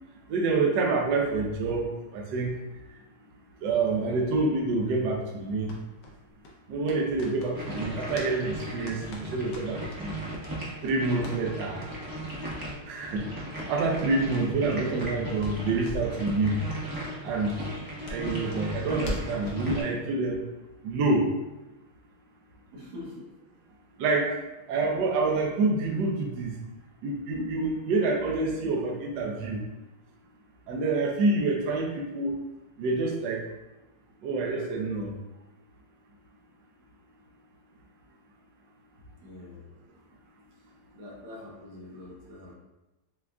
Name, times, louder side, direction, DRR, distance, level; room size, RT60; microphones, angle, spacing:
voice 1, 0.3-2.5 3.6-5.7 6.7-10.1 10.8-11.9 12.9-13.2 13.7-16.6 17.2-17.6 18.1-20.4 20.8-21.2 24.0-24.3 24.7-26.5 27.0-29.6 30.7-32.3 32.8-33.4 34.2-35.1, right 3 dB, 70° right, 0 dB, 1.2 m, -27 dB
sound 1, 5.6-8.3 8.6-10.0 10.4-10.5 10.8-11.4 11.8-11.9 12.2-12.4 12.6-12.8 13.1-15.1 15.4-16.2 16.4-16.6 16.9-17.0 17.5-19.6, left 1 dB, 65° left, 1.3 m, -41 dB
sound 2, 7.5-19.8, right 1 dB, 30° right, 0.4 m, -37 dB
voice 2, 22.7-23.3 39.2-39.6 40.9-42.6, left 2 dB, 90° right, -4 dB, 2.0 m, -44 dB
7.1 x 2.5 x 2.3 m, 1.0 s
omnidirectional pair, 2.3 m